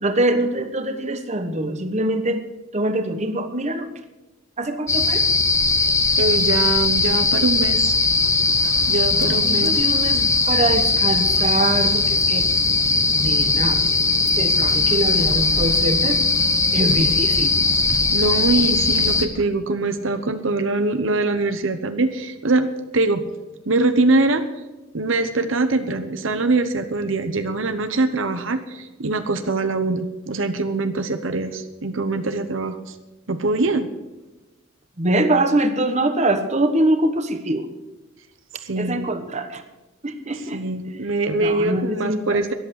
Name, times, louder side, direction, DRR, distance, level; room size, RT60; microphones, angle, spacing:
voice 1, 0.0-2.4 2.7-3.9 4.6-5.2 9.1-12.5 13.1-13.8 14.4-16.2 16.7-17.5 35.0-37.7 38.8-39.6 40.0-40.6 41.4-42.4, right 1 dB, 35° right, 8 dB, 1.2 m, -23 dB
sound 1, 4.9-19.3, left 3 dB, 15° left, 1.0 m, -19 dB
voice 2, 6.2-8.0 8.9-9.8 18.1-23.2 23.7-24.4 24.9-32.9 33.3-33.9 38.6-39.1 40.5-42.5, right 2 dB, 70° right, 9 dB, 1.1 m, -23 dB
13.5 x 11.5 x 6.5 m, 1.1 s
head